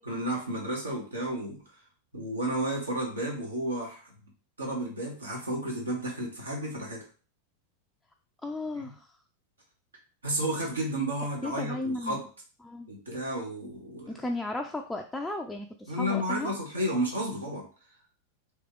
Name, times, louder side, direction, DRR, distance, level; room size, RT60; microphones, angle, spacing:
voice 1, 0.1-1.6 2.1-4.1 4.6-7.0 8.8-8.9 10.2-12.2 12.9-14.1 15.9-17.6, right 1 dB, 75° right, -2 dB, 1.2 m, -32 dB
voice 2, 8.4-9.1 11.4-12.2 12.6-12.9 14.1-16.5, left 2 dB, 5° left, 3 dB, 0.3 m, -35 dB
3.3 x 2.9 x 3.6 m, 0.38 s
figure-of-eight pair, 90°, 0 cm